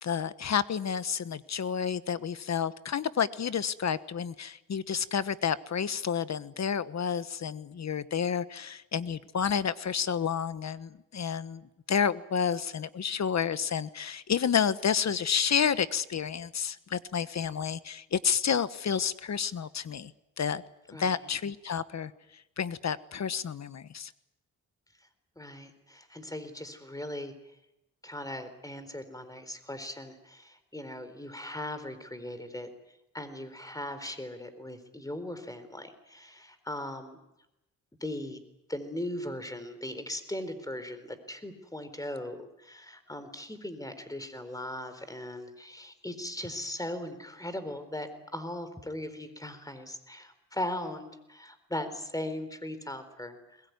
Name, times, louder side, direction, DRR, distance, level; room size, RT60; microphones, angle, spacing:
voice 1, 0.0-20.1 20.4-20.6 20.9-22.1 22.6-24.1, left 7 dB, 55° left, 14 dB, 1.3 m, -30 dB
voice 2, 20.9-21.2 25.4-27.3 28.0-32.7 33.1-37.2 38.0-38.4 38.7-53.6, left 1 dB, 10° left, 11 dB, 4.2 m, -39 dB
22.0 x 21.5 x 9.5 m, 0.87 s
cardioid pair, 70°, 33 cm